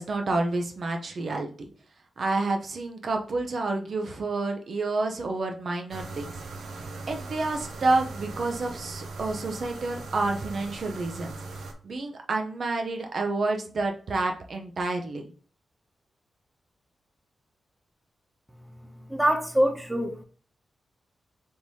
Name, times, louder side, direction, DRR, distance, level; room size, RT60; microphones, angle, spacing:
voice 1, 0.0-1.7 2.2-6.3 7.1-11.3 11.8-15.2, right 3 dB, 50° right, 3 dB, 0.6 m, -29 dB
sound 1, 5.9-11.7, right 3 dB, 85° right, 0.7 m, -39 dB
voice 2, 19.1-20.2, equal, 5° right, 3 dB, 0.5 m, -24 dB
3.5 x 2.7 x 4.6 m, 0.41 s
wide cardioid pair, 160°, 0 cm